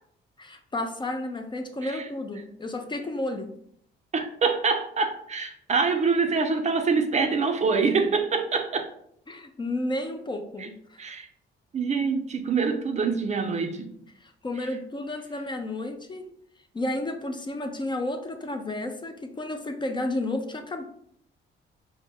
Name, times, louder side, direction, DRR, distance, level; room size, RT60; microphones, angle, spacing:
voice 1, 0.4-3.5 9.3-11.0 14.2-16.3 16.7-20.8, left 1 dB, 25° left, 0.4 m, -32 dB
voice 2, 4.1-8.9 10.6-10.7 11.0-11.3 11.7-14.0 14.6-14.7, right 4 dB, 35° right, 0.5 m, -25 dB
4.6 x 2.2 x 3.4 m
cardioid pair, 90°, 20 cm